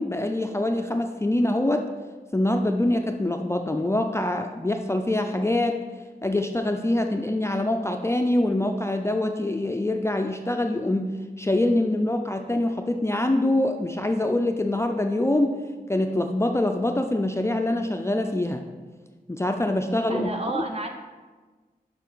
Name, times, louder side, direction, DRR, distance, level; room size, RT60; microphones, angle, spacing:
voice 1, 0.0-1.8 2.3-5.8 6.2-11.1 11.4-15.6 15.9-18.7 19.3-20.6, left 1 dB, 15° left, 5 dB, 0.4 m, -24 dB
voice 2, 20.1-20.9, right 2 dB, 40° right, 3 dB, 0.8 m, -30 dB
6.3 x 5.6 x 3.9 m, 1.3 s
wide cardioid pair, 85°, 16 cm